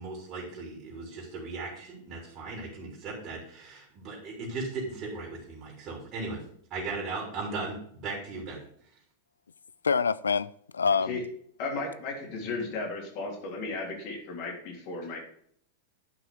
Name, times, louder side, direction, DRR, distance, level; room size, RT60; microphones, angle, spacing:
voice 1, 0.0-6.4 6.7-8.6, right 3 dB, 35° right, 3.6 m, -37 dB
voice 2, 9.8-11.2, left 5 dB, 70° left, 0.4 m, -26 dB
voice 3, 11.6-15.2, left 3 dB, 45° left, 3.4 m, -35 dB
11.0 x 6.0 x 4.7 m
figure-of-eight pair, 90°, 0 cm